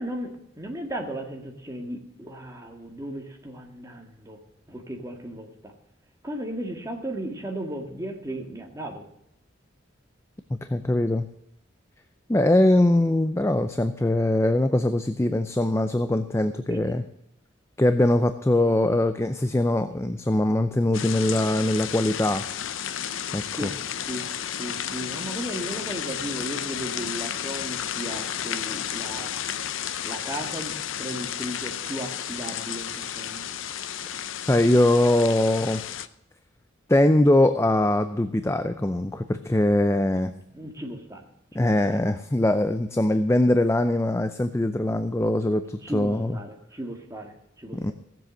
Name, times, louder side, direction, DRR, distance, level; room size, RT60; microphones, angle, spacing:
voice 1, 0.0-4.4 4.7-5.7 6.2-9.0 16.7-17.0 18.6-19.0 23.5-23.8 24.0-24.3 24.6-29.3 30.0-33.5 40.5-41.2 41.5-42.0 45.8-47.9, right 1 dB, 15° right, 1 dB, 1.8 m, -36 dB
voice 2, 10.5-11.3 12.3-17.0 17.8-22.4 23.3-23.7 34.4-35.8 36.9-40.3 41.5-46.4 47.7-47.9, left 1 dB, 15° left, 10 dB, 0.5 m, -22 dB
sound 1, 20.9-36.1, left 9 dB, 85° left, 0.6 m, -32 dB
16.0 x 7.7 x 6.5 m, 0.78 s
head